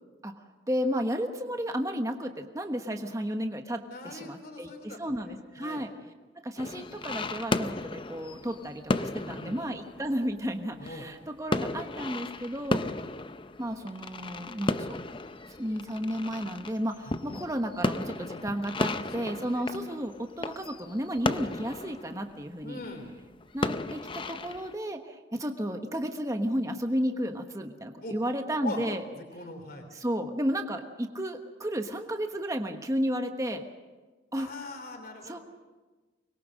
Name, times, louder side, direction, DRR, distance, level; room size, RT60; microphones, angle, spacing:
voice 1, 0.7-5.9 6.4-12.8 13.6-15.0 15.6-22.8 23.5-29.0 29.9-33.6 34.3-34.5 35.2-35.4, equal, 15° right, 5 dB, 1.2 m, -33 dB
voice 2, 3.9-5.9 9.1-9.6 10.8-11.1 17.1-17.2 18.8-19.7 22.6-23.1 28.0-28.1 28.6-28.8 29.3-29.9 34.4-35.4, left 2 dB, 50° left, 5 dB, 3.5 m, -42 dB
sound 1, 6.6-24.7, left 2 dB, 25° left, 0.6 m, -34 dB
24.5 x 21.5 x 6.5 m, 1.3 s
head